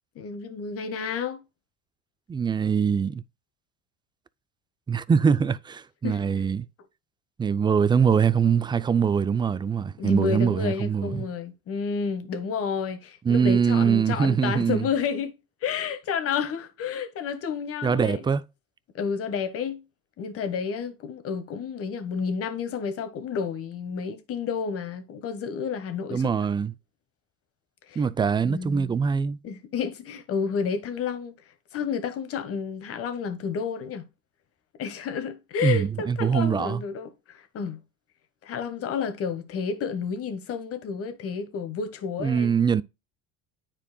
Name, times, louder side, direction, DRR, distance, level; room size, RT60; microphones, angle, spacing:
voice 1, 0.1-1.4 6.0-6.2 10.0-15.3 15.6-18.2 18.9-19.8 20.2-26.5 27.9-28.0 28.4-29.0 29.4-31.3 31.7-34.1 34.8-37.8 38.4-42.5, left 6 dB, 50° left, 1.5 m, -30 dB
voice 2, 2.3-3.2 4.9-6.7 7.4-11.2 13.2-14.8 17.8-18.4 26.1-26.7 28.0-29.4 35.6-36.8 42.2-42.8, right 6 dB, 15° right, 0.4 m, -23 dB
9.7 x 4.4 x 2.3 m
supercardioid pair, 90°, 31 cm